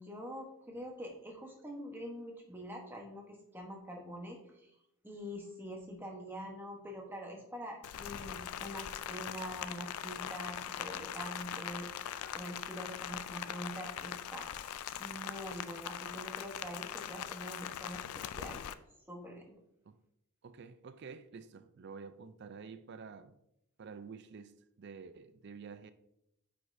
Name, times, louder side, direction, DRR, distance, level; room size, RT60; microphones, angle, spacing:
voice 1, 0.0-4.7 5.0-14.5 15.0-18.6 19.1-19.4, equal, 10° right, 1.1 m, -45 dB
Rain, 7.8-18.7, left 9 dB, 85° left, 0.4 m, -41 dB
voice 2, 20.4-23.4 23.8-25.9, right 5 dB, 50° right, 0.4 m, -49 dB
9.5 x 5.2 x 2.6 m
head